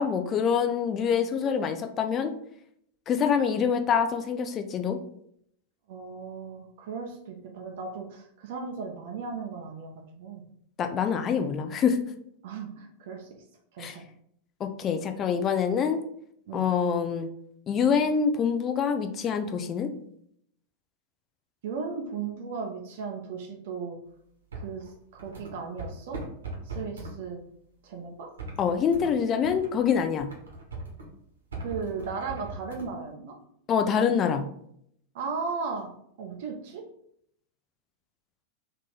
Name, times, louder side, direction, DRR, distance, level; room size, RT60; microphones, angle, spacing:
voice 1, 0.0-2.3 3.1-5.0 10.8-12.0 13.8-13.9 14.6-16.0 16.5-17.3 17.7-19.9 28.6-30.3 33.7-34.4, left 7 dB, 30° left, 7 dB, 0.5 m, -25 dB
voice 2, 5.9-10.4 12.4-13.3 13.7-14.0 16.5-16.6 21.6-24.0 24.6-24.8 25.1-26.2 26.7-27.4 27.8-28.3 31.6-33.3 35.1-35.9 36.2-36.8, right 5 dB, 55° right, 2 dB, 0.6 m, -36 dB
sound 1, 24.5-27.1 28.4-29.1 29.4-31.1 31.5-32.9, right 2 dB, 70° right, 1.1 m, -40 dB
3.6 x 2.7 x 3.9 m, 0.70 s
figure-of-eight pair, 90°, 0 cm